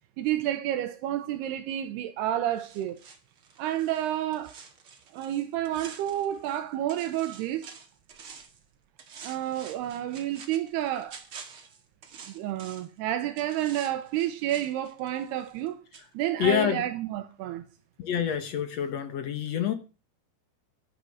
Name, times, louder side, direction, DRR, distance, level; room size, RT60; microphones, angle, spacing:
voice 1, 0.2-3.0 3.6-4.6 5.1-7.7 9.2-11.2 12.3-15.8 16.1-17.6, right 12 dB, 80° right, 2.9 m, -30 dB
sound 1, 2.6-6.6 6.9-8.6 9.0-13.0 13.4-15.7 15.9-16.1, right 6 dB, 45° right, 2.2 m, -48 dB
voice 2, 16.4-16.8 18.0-19.7, left 9 dB, 65° left, 1.7 m, -27 dB
12.0 x 11.5 x 6.5 m
omnidirectional pair, 4.7 m